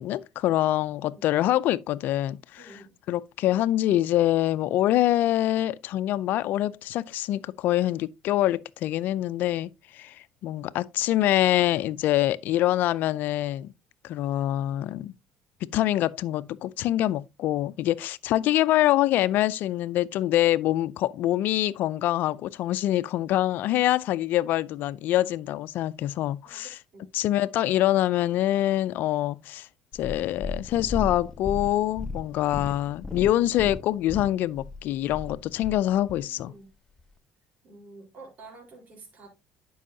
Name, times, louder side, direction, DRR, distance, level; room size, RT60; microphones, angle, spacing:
voice 1, 0.0-2.8 3.1-13.7 14.0-15.1 15.6-26.8 27.1-29.7 29.9-36.5, left 14 dB, 65° left, 0.5 m, -25 dB
voice 2, 2.6-2.9 26.4-27.1 35.9-36.7 37.6-39.3, right 3 dB, 50° right, 3.8 m, -49 dB
Purr, 29.9-36.2 37.0-37.1, left 3 dB, 20° left, 0.7 m, -36 dB
11.0 x 5.5 x 2.7 m
supercardioid pair, 80°, 3 cm